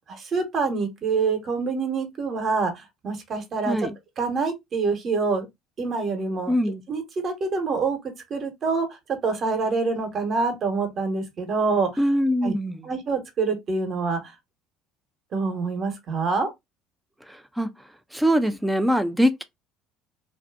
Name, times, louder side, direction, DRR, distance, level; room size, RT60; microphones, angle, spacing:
voice 1, 0.1-3.8 4.2-5.5 5.8-6.5 6.9-8.0 8.3-12.0 12.4-12.5 12.8-14.3 15.3-16.5, right 4 dB, 45° right, 1.0 m, -26 dB
voice 2, 6.5-6.8 12.0-12.9 17.3-17.7 18.1-19.4, equal, 5° right, 0.5 m, -23 dB
2.6 x 2.4 x 2.3 m
hypercardioid pair, 65°, 0 cm